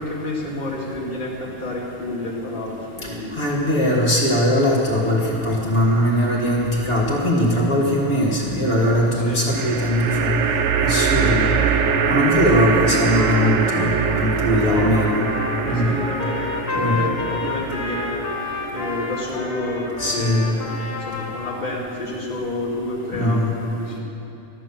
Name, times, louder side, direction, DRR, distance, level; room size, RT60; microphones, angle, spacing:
voice 1, 0.0-3.3 9.1-9.4 14.6-18.2 18.7-24.0, left 2 dB, 30° left, -6 dB, 2.4 m, -29 dB
voice 2, 3.4-10.3 10.8-11.5 12.0-13.8 14.2-15.2 15.6-15.9 16.8-17.0 20.0-20.5 23.1-23.5, equal, 45° left, -4 dB, 2.8 m, -20 dB
sound 1, 6.4-7.0 9.5-20.9, right 6 dB, 60° right, 0.9 m, -24 dB
Trumpet, 13.1-21.7, left 4 dB, 80° left, 2.0 m, -31 dB
14.5 x 11.0 x 7.3 m, 2.8 s
omnidirectional pair, 1.6 m